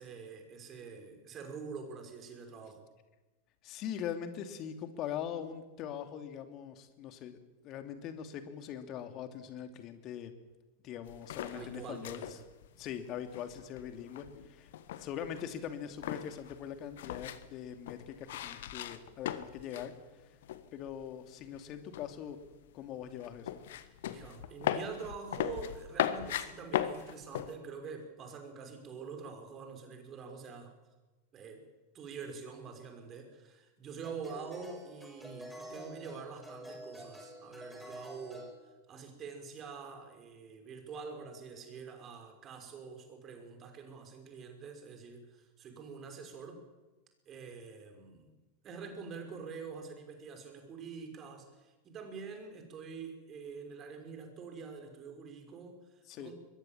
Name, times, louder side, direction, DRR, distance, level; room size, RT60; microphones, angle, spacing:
voice 1, 0.0-2.8 11.5-12.4 24.1-30.7 31.3-31.7 31.9-38.5 38.9-46.6 47.3-48.4 48.6-56.3, right 5 dB, 30° right, 5 dB, 5.9 m, -46 dB
voice 2, 3.6-7.4 7.6-10.3 10.8-12.2 12.8-14.7 15.0-19.9 20.7-22.4 22.7-23.6 56.1-56.3, left 9 dB, 35° left, 7 dB, 2.9 m, -42 dB
sound 1, 11.0-20.0 20.2-21.1 21.4-27.5, left 11 dB, 55° left, 1.5 m, -38 dB
sound 2, 32.6-32.8 34.0-38.5, equal, ahead, 6.1 m, -48 dB
24.0 x 21.5 x 7.5 m, 1.1 s
figure-of-eight pair, 90°, 0 cm